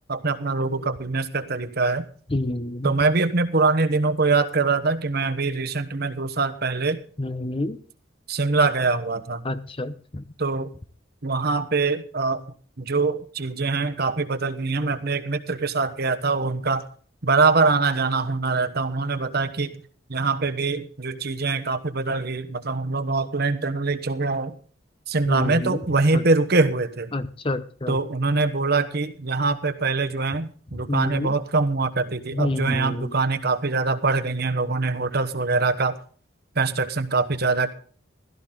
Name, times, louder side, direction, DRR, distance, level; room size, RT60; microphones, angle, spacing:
voice 1, 0.1-2.1 2.8-7.0 8.3-9.4 10.4-10.7 11.2-12.4 12.8-16.8 17.2-19.7 20.1-24.6 25.1-27.1 27.9-36.0 36.6-37.7, right 3 dB, 50° right, 9 dB, 1.2 m, -23 dB
voice 2, 2.3-2.9 7.2-7.8 9.4-10.2 25.3-25.8 26.1-26.2 27.1-28.0 30.9-31.3 32.3-33.1, left 1 dB, 25° left, 12 dB, 0.8 m, -28 dB
16.0 x 13.0 x 3.9 m, 0.43 s
head